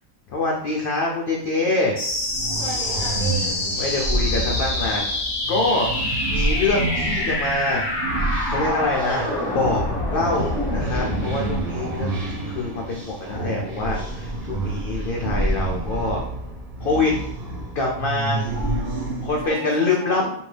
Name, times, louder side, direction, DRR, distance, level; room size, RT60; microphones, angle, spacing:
voice 1, 0.3-2.0 3.8-5.1 5.5-7.9 8.5-9.8 10.1-12.1 12.4-16.2 16.8-17.1 17.7-18.4 19.2-20.3, left 3 dB, 70° left, -1 dB, 0.5 m, -25 dB
sound 1, 2.0-13.0, left 1 dB, 25° left, 0.7 m, -27 dB
sound 2, 2.1-19.5, right 2 dB, 55° right, 0.5 m, -29 dB
voice 2, 2.6-3.8 18.5-20.3, right 1 dB, 75° right, -2 dB, 1.2 m, -34 dB
2.8 x 2.6 x 3.2 m, 0.70 s
omnidirectional pair, 1.4 m